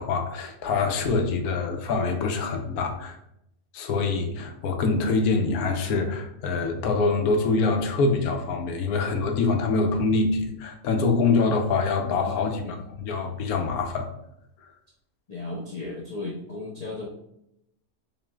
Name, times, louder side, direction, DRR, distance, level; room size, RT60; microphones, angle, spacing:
voice 1, 0.0-3.2 3.7-14.1, left 4 dB, 85° left, 4 dB, 1.1 m, -25 dB
voice 2, 12.0-12.8 15.3-17.1, left 2 dB, 65° left, -4 dB, 0.4 m, -36 dB
5.1 x 3.2 x 2.2 m, 0.79 s
omnidirectional pair, 1.5 m